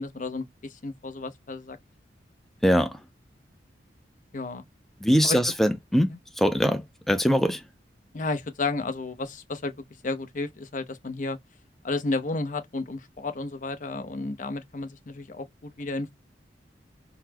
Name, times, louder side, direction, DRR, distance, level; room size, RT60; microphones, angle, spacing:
voice 1, 0.0-1.8 4.3-4.6 5.2-5.4 8.1-9.7 10.0-11.4 11.8-16.1, left 3 dB, 45° left, 0.7 m, -32 dB
voice 2, 2.6-2.9 5.0-7.6, equal, ahead, 0.5 m, -22 dB
4.0 x 2.1 x 2.7 m
head